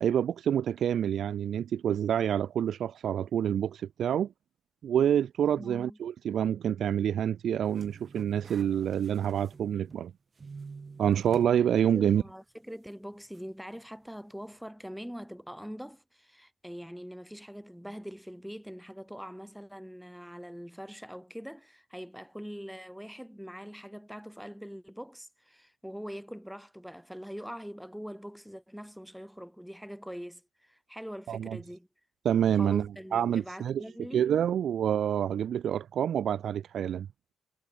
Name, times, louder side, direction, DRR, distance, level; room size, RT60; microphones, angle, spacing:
voice 1, 0.0-4.3 4.8-10.1 11.0-12.2 31.3-31.6 32.2-33.8 34.1-37.1, right 9 dB, 65° right, 0.8 m, -27 dB
voice 2, 5.6-6.0 11.9-31.9 32.5-34.4, equal, ahead, 7.5 m, -43 dB
sound 1, 7.6-10.1 10.4-11.6 12.0-12.1 13.3-13.4, right 4 dB, 35° right, 6.7 m, -48 dB
cardioid pair, 90°, 0 cm